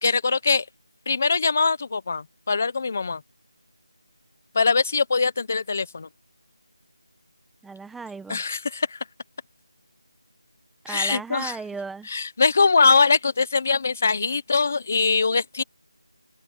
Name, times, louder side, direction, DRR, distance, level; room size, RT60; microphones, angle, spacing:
voice 1, 0.0-0.6 1.1-3.2 4.5-6.1 8.3-9.0 10.9-11.5 12.1-15.6, left 4 dB, 25° left, 0.9 m, -22 dB
voice 2, 7.6-8.4 10.8-12.1, right 4 dB, ahead, 1.1 m, -35 dB
open air
figure-of-eight pair, 180°, 3 cm